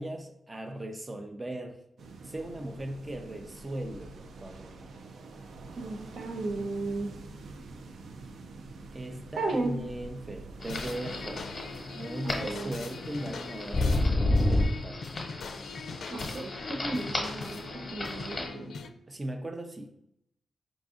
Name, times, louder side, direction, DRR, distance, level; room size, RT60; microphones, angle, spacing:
voice 1, 0.0-1.8 2.2-4.7 8.9-11.4 11.9-15.0 19.1-19.9, right 1 dB, 20° right, 5 dB, 0.5 m, -38 dB
sound 1, 2.0-13.8, right 3 dB, 90° right, 0.4 m, -47 dB
voice 2, 5.8-7.1 9.4-9.8 12.2-12.7 16.1-18.7, right 2 dB, 70° right, 2 dB, 0.8 m, -34 dB
sound 2, 10.6-18.5, left 1 dB, 25° left, 1.0 m, -31 dB
sound 3, 10.7-18.9, left 4 dB, 80° left, 0.4 m, -41 dB
4.8 x 2.6 x 3.6 m, 0.77 s
wide cardioid pair, 155°, 0 cm